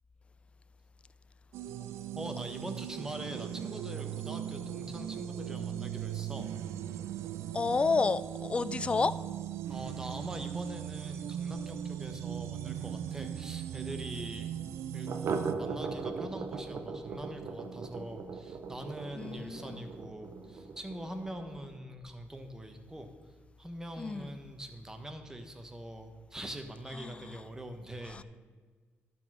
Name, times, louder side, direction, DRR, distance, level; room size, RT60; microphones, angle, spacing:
sound 1, 1.5-15.5, right 10 dB, 90° right, 0.4 m, -39 dB
voice 1, 2.1-6.5 9.7-14.5 14.9-15.1 15.6-23.1 23.6-28.2, right 1 dB, 10° right, 1.0 m, -43 dB
sound 2, 3.3-12.6 12.9-13.0 13.3-13.4 13.8-13.9 15.0-21.8, right 4 dB, 65° right, 0.7 m, -42 dB
voice 2, 7.5-9.2 14.6-14.7 19.2-19.9 24.0-24.4 26.9-27.4 28.0-28.2, left 4 dB, 25° left, 0.3 m, -31 dB
11.5 x 4.1 x 6.0 m
cardioid pair, 95°, 5 cm